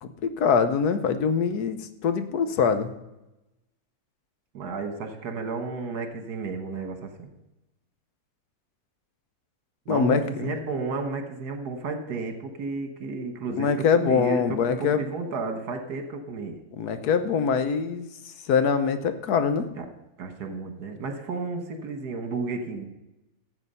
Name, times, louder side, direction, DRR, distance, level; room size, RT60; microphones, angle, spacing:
voice 1, 0.0-2.9 9.9-10.5 13.5-15.0 16.8-18.1 18.5-19.7, left 6 dB, 70° left, 10 dB, 1.3 m, -24 dB
voice 2, 4.5-7.3 9.9-16.6 19.8-19.9 20.2-22.8, right 3 dB, 75° right, 6 dB, 1.9 m, -32 dB
14.0 x 7.9 x 5.5 m, 0.97 s
omnidirectional pair, 1.7 m